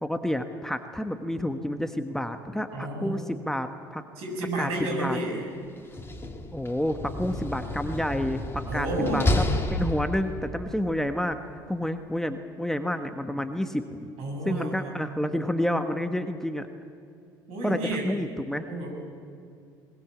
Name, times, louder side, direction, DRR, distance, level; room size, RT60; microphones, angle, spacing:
voice 1, 0.0-4.0 4.6-5.2 6.5-9.4 9.7-11.4 11.7-14.1 14.4-16.7 17.6-18.6, left 1 dB, 5° left, 7 dB, 1.4 m, -29 dB
voice 2, 2.7-3.2 4.2-5.5 8.7-9.3 14.2-14.9 17.5-18.1 18.6-18.9, right 2 dB, 60° right, 1 dB, 6.7 m, -31 dB
Slam, 5.8-10.5, left 1 dB, 20° left, 2.6 m, -30 dB
22.0 x 20.5 x 8.5 m, 2.5 s
hypercardioid pair, 60°, 12 cm